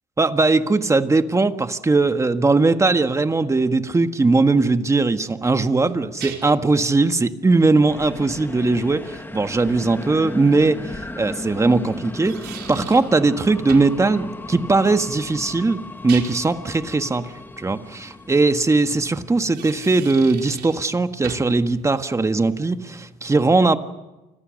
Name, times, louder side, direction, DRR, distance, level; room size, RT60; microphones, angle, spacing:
voice 1, 0.2-23.8, right 3 dB, 15° right, 8 dB, 1.6 m, -19 dB
sound 1, 5.4-6.7 9.9-10.0 12.0-13.2 13.7-14.0 15.8-16.6 19.4-20.9 21.2-21.6, right 9 dB, 75° right, 4.7 m, -38 dB
sound 2, 7.9-19.4, left 2 dB, 10° left, 1.7 m, -36 dB
29.0 x 25.5 x 6.5 m, 1.1 s
cardioid pair, 110°, 17 cm